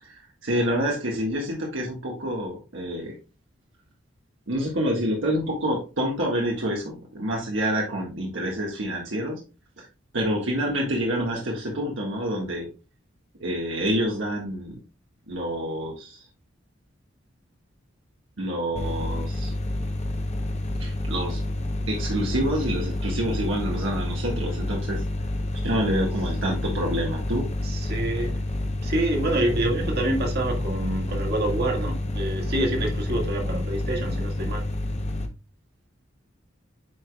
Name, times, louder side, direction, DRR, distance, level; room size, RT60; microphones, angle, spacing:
voice 1, 0.0-3.1 4.5-9.4 9.8-9.9 10.1-12.7 13.4-14.8 15.3-16.2 18.4-19.5 20.8-21.4 21.9-25.0 25.6-27.5, equal, 80° right, 1.7 m, -27 dB
sound 1, 18.7-35.3, left 1 dB, 35° left, 0.8 m, -29 dB
voice 2, 27.6-34.7, right 1 dB, 55° right, 1.9 m, -27 dB
9.2 x 4.8 x 2.3 m
head